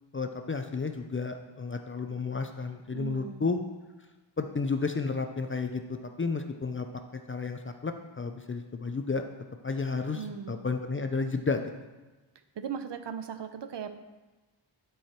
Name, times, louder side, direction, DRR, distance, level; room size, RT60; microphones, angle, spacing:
voice 1, 0.1-3.6 4.4-6.9 7.3-9.2 9.6-11.6, left 4 dB, 30° left, 6 dB, 0.4 m, -32 dB
voice 2, 2.9-3.5 10.1-10.6 12.6-13.9, right 7 dB, 65° right, 9 dB, 0.7 m, -38 dB
11.5 x 4.8 x 4.4 m, 1.2 s
wide cardioid pair, 170°, 46 cm